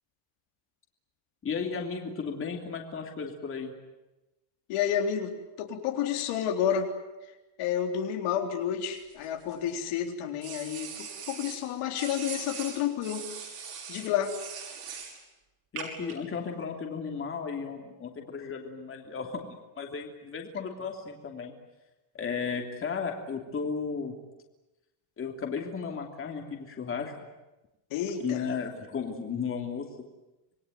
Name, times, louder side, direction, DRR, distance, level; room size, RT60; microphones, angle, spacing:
voice 1, 1.4-3.7 15.7-21.5 22.1-24.1 25.2-27.1 28.2-29.9, left 5 dB, 25° left, 2 dB, 3.1 m, -34 dB
voice 2, 4.7-5.3 5.6-6.9 7.6-13.5 13.9-14.3 27.9-28.4, left 9 dB, 80° left, 3 dB, 3.9 m, -30 dB
sound 1, 8.8-9.8 10.4-11.6 12.0-15.2 15.8-16.1, right 7 dB, 50° right, 5.9 m, -41 dB
27.0 x 21.5 x 9.4 m, 1.0 s
cardioid pair, 170°, 49 cm